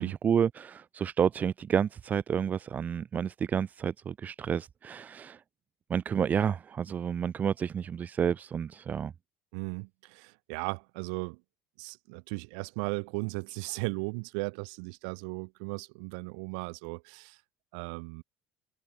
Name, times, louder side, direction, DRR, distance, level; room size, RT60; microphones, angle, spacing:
voice 1, 0.0-5.4 5.9-9.1, right 8 dB, 35° right, 1.5 m, -30 dB
voice 2, 9.5-11.4 11.8-17.4 17.7-18.2, right 36 dB, 80° right, 2.7 m, -36 dB
supercardioid pair, 105°, 5 cm